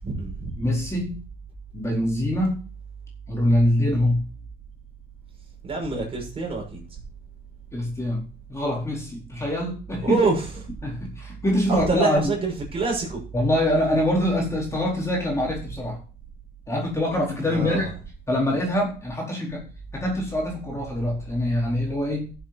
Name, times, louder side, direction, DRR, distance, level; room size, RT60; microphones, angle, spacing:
voice 1, 0.0-0.6 5.6-6.8 10.0-10.4 11.7-13.2 17.5-17.9, right 3 dB, 35° right, 0 dB, 6.2 m, -26 dB
voice 2, 0.6-1.2 1.7-2.6 3.3-4.2 7.7-8.2 8.5-10.2 10.8-12.3 13.3-16.0 16.7-17.9 18.3-19.6 19.9-22.3, left 1 dB, 15° left, -2 dB, 4.4 m, -24 dB
13.5 x 7.7 x 4.2 m, 0.36 s
cardioid pair, 110°, 17 cm